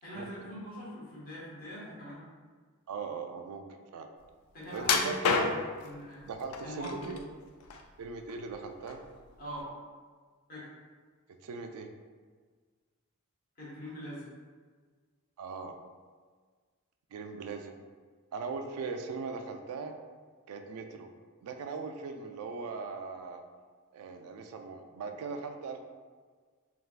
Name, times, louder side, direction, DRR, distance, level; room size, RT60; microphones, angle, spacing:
voice 1, 0.0-2.2 4.5-5.3 5.8-6.2 6.6-7.2 9.4-9.7 10.5-10.7 13.6-14.2, equal, 45° left, -7 dB, 1.1 m, -42 dB
voice 2, 2.9-4.1 4.7-5.4 6.2-7.2 8.0-9.0 11.4-11.9 15.4-15.8 17.1-17.7 18.3-20.0 20.5-21.1 21.4-23.4 23.9-25.8, right 4 dB, 85° right, 6 dB, 0.3 m, -39 dB
sound 1, 4.8-5.9 6.5-7.2 7.6-8.5 8.9-9.1 9.6-9.7, left 5 dB, 85° left, 0.3 m, -29 dB
3.4 x 2.3 x 2.4 m, 1.5 s
head